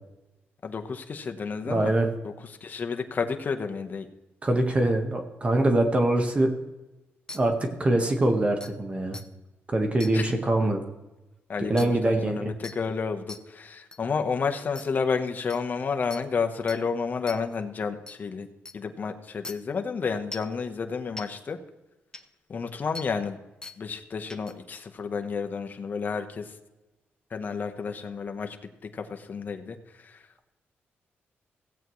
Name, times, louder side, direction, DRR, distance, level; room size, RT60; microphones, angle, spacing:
voice 1, 0.6-1.9 2.2-2.3 2.6-4.1 10.1-10.3 11.5-18.5 18.7-21.6 22.5-23.4 23.8-26.5 27.3-28.6 28.9-29.8 30.0-30.2, left 5 dB, 45° left, 5 dB, 1.0 m, -31 dB
voice 2, 1.7-2.1 4.4-6.5 7.3-9.2 9.7-10.8 11.7-12.4, right 1 dB, 25° right, 4 dB, 1.3 m, -23 dB
sound 1, 7.3-7.4 8.1-8.2 8.6-8.7 9.1-9.2 10.0-10.1 11.8-11.9 12.6-12.8 13.3-13.4 13.9-14.0 14.8-14.9 15.5-15.6 16.1-16.2 16.7-16.8 17.3-17.4 18.1-18.2 18.7-18.8 19.4-19.5 20.3-20.5 21.2-21.3 22.1-22.2 22.9-23.1 23.6-23.8 24.3-24.5, left 2 dB, 15° left, 0.8 m, -40 dB
16.5 x 8.2 x 3.1 m, 1.0 s
cardioid pair, 105°, 4 cm